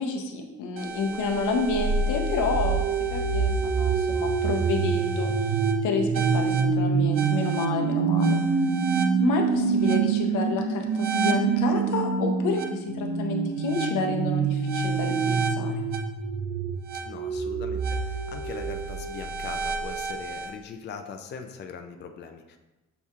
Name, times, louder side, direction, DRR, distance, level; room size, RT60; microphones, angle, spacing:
voice 1, 0.0-2.8 3.1-5.3 5.8-8.4 9.2-15.7, left 4 dB, 80° left, 3 dB, 0.7 m, -29 dB
sound 1, 0.8-20.5, right 5 dB, 80° right, 0.5 m, -26 dB
voice 2, 8.9-9.2 17.0-22.6, left 5 dB, 35° left, 5 dB, 0.4 m, -41 dB
6.9 x 2.7 x 2.4 m, 1.1 s
cardioid pair, 90°, 30 cm